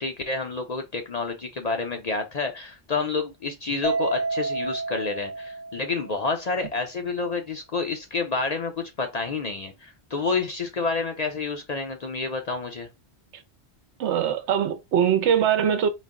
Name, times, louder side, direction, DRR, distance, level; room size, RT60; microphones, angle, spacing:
voice 1, 0.0-12.9, left 4 dB, 50° left, 0.5 m, -29 dB
Mallet percussion, 3.8-6.3, right 3 dB, 90° left, 1.9 m, -29 dB
voice 2, 14.0-15.9, right 8 dB, 85° right, 1.0 m, -22 dB
4.0 x 2.0 x 3.6 m
omnidirectional pair, 1.1 m